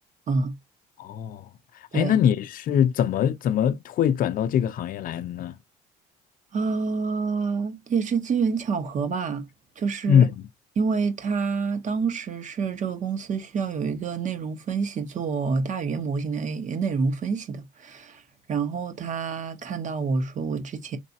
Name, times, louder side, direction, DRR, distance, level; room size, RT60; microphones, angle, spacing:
voice 1, 1.0-1.5 1.7-5.6 10.1-10.4, left 9 dB, 55° left, 0.5 m, -23 dB
voice 2, 6.5-9.4 9.8-10.3 10.8-18.2 18.5-21.0, right 5 dB, 45° right, 1.2 m, -27 dB
4.1 x 3.3 x 2.7 m
cardioid pair, 110°, 17 cm